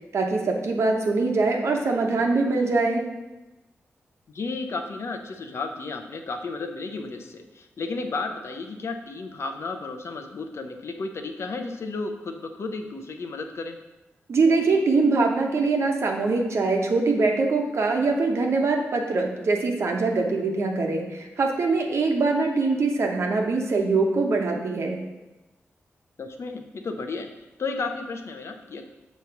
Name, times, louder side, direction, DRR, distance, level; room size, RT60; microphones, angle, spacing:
voice 1, 0.1-3.0 14.3-25.0, right 3 dB, 65° right, 2 dB, 1.0 m, -23 dB
voice 2, 4.3-13.8 26.2-27.3 27.6-28.8, left 3 dB, 65° left, 5 dB, 0.7 m, -33 dB
6.7 x 3.1 x 5.8 m, 1.0 s
cardioid pair, 75°, 5 cm